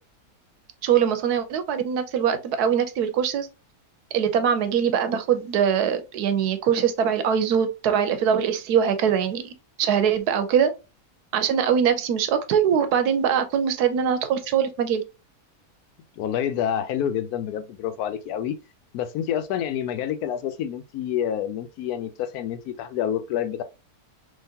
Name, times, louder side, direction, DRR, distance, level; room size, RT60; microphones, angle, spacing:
voice 1, 0.8-3.5 4.1-10.7 11.3-15.0, right 8 dB, 90° right, 1.2 m, -22 dB
voice 2, 16.2-18.6 18.9-23.6, left 9 dB, 80° left, 1.1 m, -28 dB
3.8 x 2.9 x 2.7 m
omnidirectional pair, 1.6 m